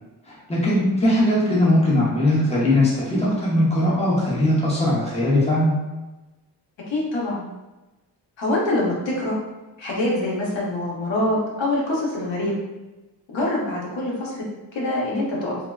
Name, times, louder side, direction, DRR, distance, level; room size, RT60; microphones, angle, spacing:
voice 1, 0.3-5.8, left 1 dB, 15° left, -7 dB, 0.8 m, -20 dB
voice 2, 6.9-7.4 8.4-9.4 9.8-12.5 13.3-14.4 14.7-15.6, left 1 dB, 80° left, -3 dB, 0.8 m, -24 dB
3.4 x 2.2 x 2.3 m, 1.1 s
wide cardioid pair, 120°, 44 cm